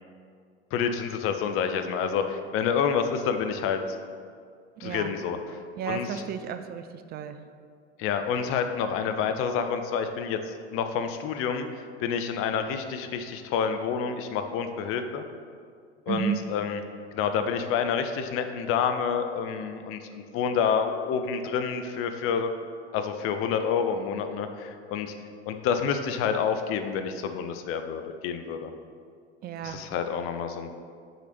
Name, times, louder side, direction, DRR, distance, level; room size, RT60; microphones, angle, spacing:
voice 1, 0.7-3.8 4.8-6.2 8.0-11.7 12.0-15.2 16.1-16.8 17.1-22.5 22.9-25.1 25.5-28.7 29.6-30.7, left 7 dB, 40° left, 7 dB, 0.8 m, -28 dB
voice 2, 4.8-5.1 5.8-6.8 7.1-7.4 16.1-16.4 29.4-29.8, right 8 dB, 30° right, 9 dB, 0.5 m, -32 dB
6.5 x 5.1 x 6.0 m, 2.2 s
hypercardioid pair, 85°, 33 cm